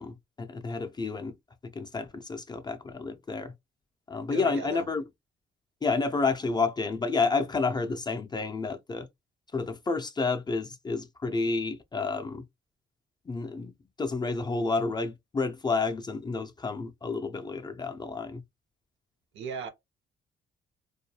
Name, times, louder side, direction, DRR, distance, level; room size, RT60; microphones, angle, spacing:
voice 1, 0.0-1.3 1.6-3.5 4.1-5.0 5.8-9.1 9.5-12.4 13.3-13.7 14.0-18.4, left 4 dB, 20° left, 0.3 m, -30 dB
voice 2, 4.3-4.9 19.3-19.7, right 5 dB, 70° right, 0.7 m, -36 dB
2.3 x 2.2 x 2.7 m
cardioid pair, 90°, 20 cm